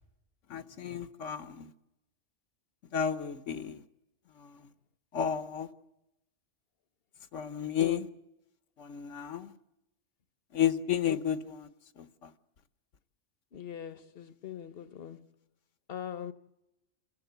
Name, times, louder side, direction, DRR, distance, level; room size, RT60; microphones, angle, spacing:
voice 1, 0.5-1.7 2.9-3.8 4.4-4.7 5.1-5.7 7.3-8.0 8.8-9.5 10.5-11.7 12.0-12.3, left 9 dB, 75° left, 1.3 m, -32 dB
voice 2, 13.5-15.3 15.9-16.3, left 9 dB, 55° left, 1.1 m, -41 dB
28.0 x 15.0 x 8.1 m
omnidirectional pair, 1.3 m